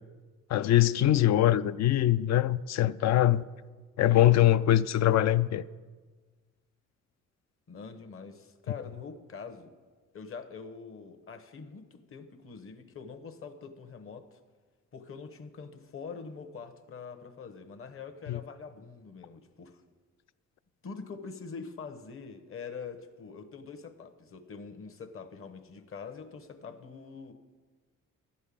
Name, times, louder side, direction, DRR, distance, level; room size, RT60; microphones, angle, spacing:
voice 1, 0.5-3.4 4.0-5.6 18.3-18.4, left 13 dB, 60° left, 0.5 m, -23 dB
voice 2, 7.7-9.7 10.1-14.4 14.9-19.8 20.8-27.3, left 5 dB, 45° left, 1.1 m, -44 dB
12.0 x 5.5 x 8.5 m
cardioid pair, 90°, 30 cm